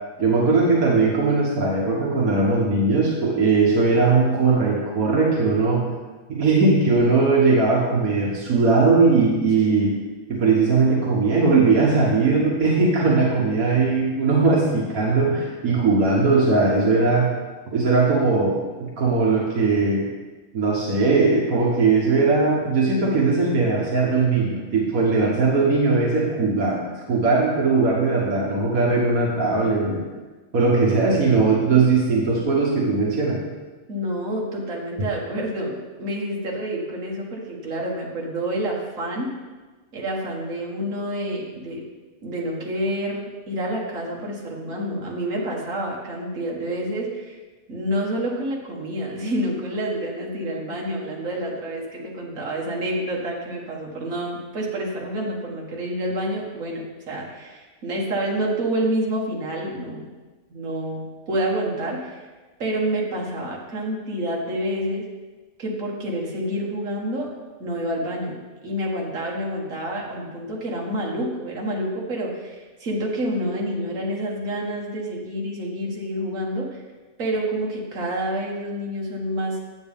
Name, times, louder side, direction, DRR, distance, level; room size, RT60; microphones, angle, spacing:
voice 1, 0.2-5.9 6.3-10.0 10.3-17.3 17.7-20.1 20.5-26.8 27.1-30.0 30.5-33.4, right 3 dB, 85° right, -3 dB, 1.7 m, -19 dB
voice 2, 33.9-39.3 39.9-41.9 42.2-47.4 47.7-60.1 60.5-62.2 62.6-65.1 65.6-67.3 67.6-68.4 68.6-76.8 77.2-79.6, right 1 dB, 70° right, -2 dB, 1.9 m, -28 dB
9.3 x 8.4 x 3.6 m, 1.3 s
omnidirectional pair, 1.5 m